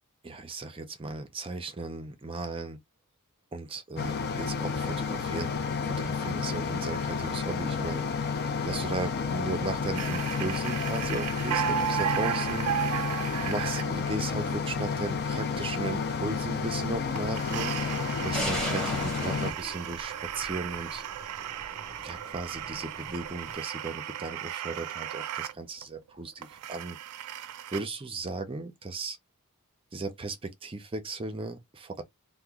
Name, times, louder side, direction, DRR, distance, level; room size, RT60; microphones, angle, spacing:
voice 1, 0.2-2.8 3.5-5.5 5.8-12.7 13.0-13.1 13.4-21.0 22.0-27.0 27.3-29.2 29.9-32.0, right 3 dB, 25° right, 0.5 m, -36 dB
sound 1, 4.0-19.5, left 5 dB, 45° left, 0.5 m, -31 dB
sound 2, 9.9-13.9 17.2-25.5 25.8-25.9 26.4-27.8, right 10 dB, 75° right, 0.4 m, -35 dB
sound 3, 18.3-23.5, equal, 5° left, 1.3 m, -39 dB
2.8 x 2.1 x 3.5 m
head